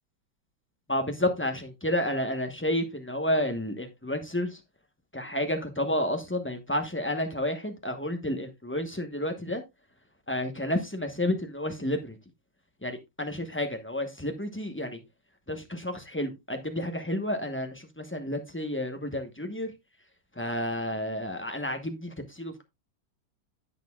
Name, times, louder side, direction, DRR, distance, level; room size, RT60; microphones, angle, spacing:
voice 1, 0.9-4.6 5.1-9.6 10.3-12.2 12.8-15.0 15.5-19.7 20.4-22.6, left 1 dB, 15° left, 5 dB, 0.4 m, -30 dB
10.5 x 8.5 x 2.3 m, 0.21 s
omnidirectional pair, 2.2 m